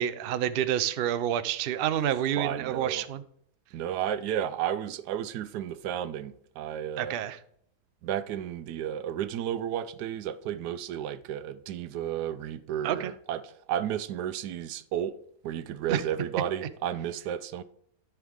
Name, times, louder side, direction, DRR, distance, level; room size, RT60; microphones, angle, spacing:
voice 1, 0.0-3.2 7.0-7.4 12.8-13.1 15.9-16.0, right 10 dB, 70° right, 0.5 m, -28 dB
voice 2, 2.4-3.1 3.7-7.2 8.0-15.2 15.4-17.6, right 10 dB, 90° right, 1.2 m, -32 dB
13.0 x 4.6 x 3.6 m
omnidirectional pair, 1.7 m